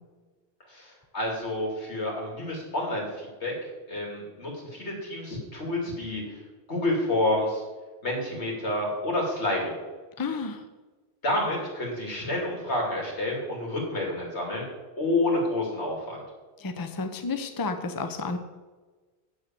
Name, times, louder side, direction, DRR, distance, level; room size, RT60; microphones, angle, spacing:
voice 1, 0.7-3.5 3.9-6.4 6.7-7.6 8.0-9.8 11.2-14.7 15.0-16.2, left 1 dB, 90° left, -1 dB, 3.1 m, -29 dB
voice 2, 10.2-10.6 16.6-18.4, left 4 dB, 25° left, 7 dB, 0.7 m, -31 dB
8.2 x 6.6 x 7.6 m, 1.3 s
omnidirectional pair, 1.1 m